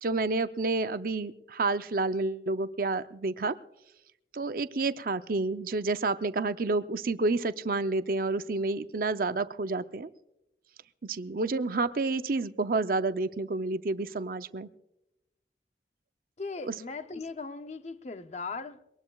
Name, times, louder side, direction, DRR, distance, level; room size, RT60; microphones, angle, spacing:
voice 1, 0.0-3.6 4.3-10.1 11.0-14.7 16.6-16.7, right 3 dB, 55° right, 0.6 m, -29 dB
voice 2, 16.4-18.9, left 4 dB, 40° left, 0.6 m, -38 dB
22.5 x 19.0 x 2.3 m
head